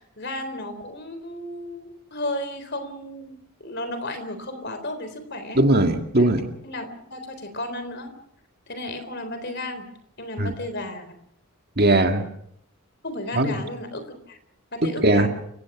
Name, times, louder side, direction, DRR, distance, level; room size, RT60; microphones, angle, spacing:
voice 1, 0.0-5.6 6.2-6.3 6.6-8.1 8.7-9.9 10.2-11.1 13.0-14.4 14.7-15.3, left 1 dB, 50° left, 10 dB, 3.8 m, -33 dB
voice 2, 5.6-6.5 10.4-10.5 11.8-12.2 13.3-13.6 14.8-15.3, right 1 dB, 45° right, 5 dB, 2.0 m, -19 dB
29.5 x 16.5 x 6.2 m, 0.74 s
head